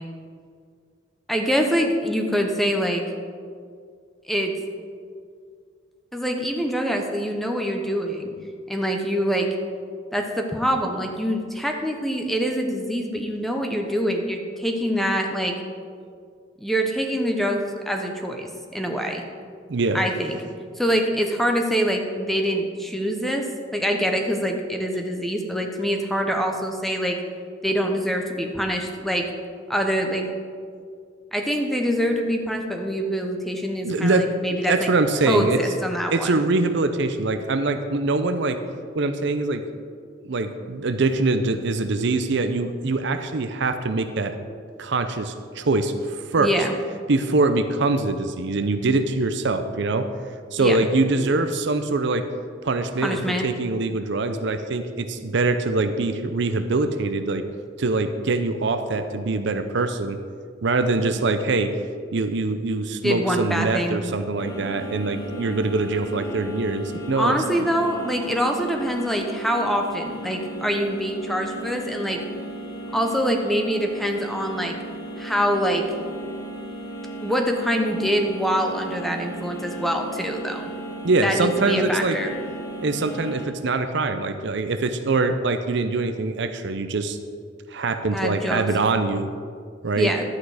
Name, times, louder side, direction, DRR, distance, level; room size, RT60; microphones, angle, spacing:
voice 1, 1.3-3.0 4.3-4.5 6.1-8.3 8.7-9.5 10.1-15.5 16.6-19.2 19.9-20.4 20.8-23.4 23.7-27.2 27.6-29.2 29.7-30.3 31.3-34.9 35.3-36.3 46.4-46.7 50.6-50.8 53.0-53.5 63.0-64.0 67.2-72.2 72.9-74.8 75.2-75.8 77.2-80.6 81.2-82.3 88.1-88.7 90.0-90.2, equal, ahead, 3 dB, 0.9 m, -24 dB
voice 2, 19.7-20.0 33.8-34.3 34.7-35.6 36.1-38.6 38.9-39.6 40.2-44.4 44.8-46.5 47.1-50.1 50.5-52.2 52.6-57.4 57.8-60.2 60.6-61.7 62.1-67.3 81.0-82.2 82.8-87.2 87.7-89.3 89.8-90.1, right 3 dB, 65° right, 8 dB, 0.6 m, -23 dB
sound 1, 64.4-83.5, right 1 dB, 55° left, 1.4 m, -36 dB
11.5 x 8.5 x 4.9 m, 2.1 s
head